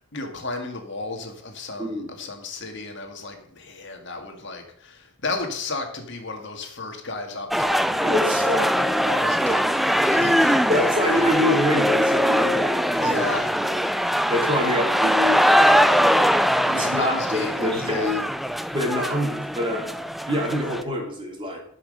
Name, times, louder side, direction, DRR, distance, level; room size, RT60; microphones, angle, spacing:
voice 1, 0.0-8.5 9.1-10.6 13.0-13.6 16.6-18.2, left 3 dB, 55° left, 4 dB, 2.0 m, -33 dB
sound 1, 7.5-20.8, equal, ahead, 0.3 m, -21 dB
voice 2, 8.0-8.7 10.7-13.4 13.6-13.7 14.3-16.4 16.7-18.2 18.7-19.9 20.2-21.6, left 1 dB, 25° right, 0 dB, 3.1 m, -26 dB
13.0 x 6.1 x 6.6 m, 0.66 s
head